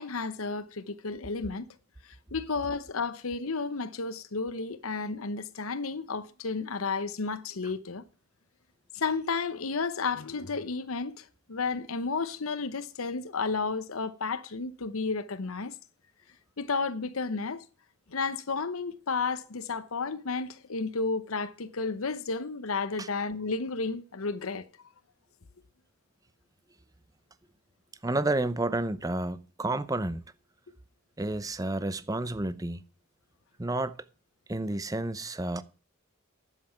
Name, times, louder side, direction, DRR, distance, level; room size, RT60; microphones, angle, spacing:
voice 1, 0.0-1.7 2.3-8.0 8.9-15.7 16.6-17.6 18.1-24.7, left 4 dB, 85° left, 0.9 m, -32 dB
voice 2, 28.0-30.2 31.2-32.8 33.6-34.0 34.5-35.6, right 2 dB, 15° right, 0.6 m, -30 dB
11.0 x 7.8 x 5.8 m
head